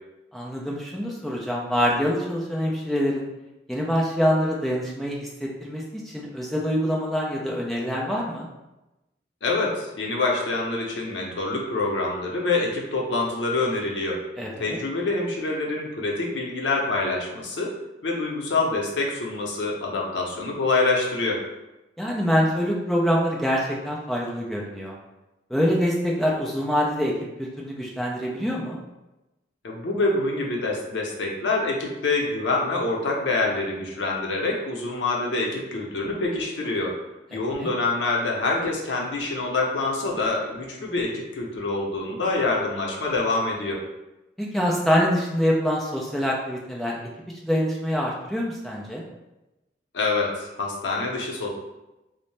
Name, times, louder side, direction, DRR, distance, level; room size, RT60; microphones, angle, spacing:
voice 1, 0.3-3.3 3.7-8.5 14.4-14.8 22.0-24.9 25.5-27.1 27.4-28.8 37.3-37.7 44.4-47.0 47.4-49.0, equal, ahead, -3 dB, 0.4 m, -25 dB
voice 2, 9.4-14.2 14.6-17.7 18.0-21.4 29.6-36.9 37.3-43.8 49.9-51.5, left 3 dB, 90° left, -1 dB, 0.6 m, -26 dB
2.6 x 2.0 x 3.1 m, 0.99 s
head